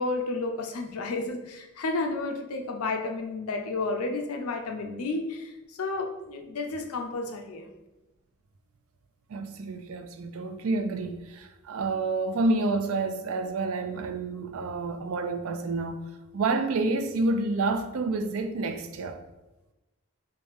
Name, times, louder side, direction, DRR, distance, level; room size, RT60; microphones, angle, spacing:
voice 1, 0.0-7.7, left 3 dB, 80° left, 5 dB, 0.5 m, -31 dB
voice 2, 9.3-16.0 16.3-19.2, right 3 dB, 65° right, 7 dB, 0.4 m, -29 dB
3.2 x 2.6 x 3.5 m, 1.0 s
head